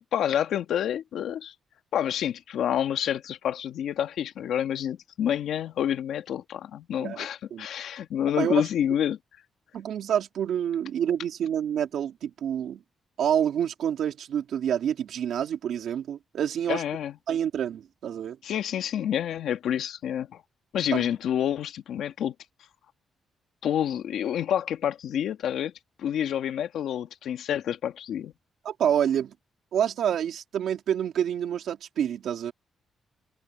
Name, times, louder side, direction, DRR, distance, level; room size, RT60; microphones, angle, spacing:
voice 1, 0.1-1.5 1.9-9.2 16.7-17.2 18.4-20.4 20.7-22.3 23.6-25.7 26.0-28.3, left 10 dB, 70° left, 1.9 m, -28 dB
voice 2, 7.0-7.7 8.4-8.7 9.7-12.8 13.2-16.8 17.3-18.4 20.9-21.0 28.6-29.3 29.7-32.5, right 9 dB, 65° right, 2.9 m, -28 dB
cardioid pair, 160°, 0 cm